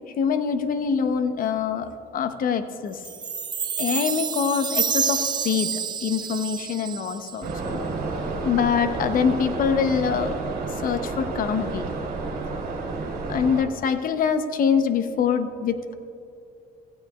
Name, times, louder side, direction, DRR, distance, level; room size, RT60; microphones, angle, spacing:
voice 1, 0.2-3.0 3.8-7.8 8.4-10.4 10.8-11.9 13.3-15.9, left 6 dB, 55° left, 9 dB, 0.8 m, -24 dB
Chime, 3.0-7.5, right 7 dB, 25° right, 0.4 m, -28 dB
sound 1, 7.4-13.6, right 3 dB, 60° right, 3.0 m, -30 dB
15.5 x 15.0 x 2.4 m, 2.5 s
cardioid pair, 110°, 17 cm